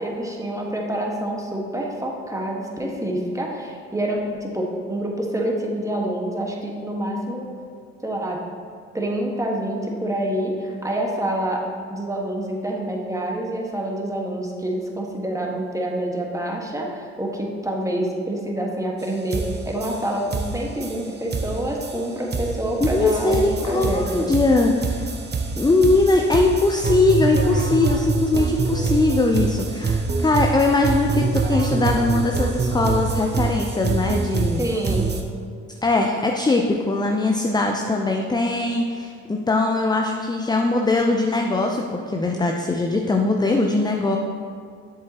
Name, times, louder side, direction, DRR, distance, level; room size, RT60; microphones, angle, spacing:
voice 1, 0.0-7.5 8.0-8.4 8.9-11.6 11.9-24.3 34.6-35.2, right 1 dB, 10° right, -1 dB, 1.5 m, -27 dB
sound 1, 19.0-19.1 19.3-35.2, right 4 dB, 30° right, 0.9 m, -25 dB
voice 2, 22.8-25.1 25.6-34.7 35.8-44.2, left 2 dB, 10° left, 2 dB, 0.6 m, -21 dB
7.4 x 7.4 x 2.9 m, 2.2 s
hypercardioid pair, 55°, 34 cm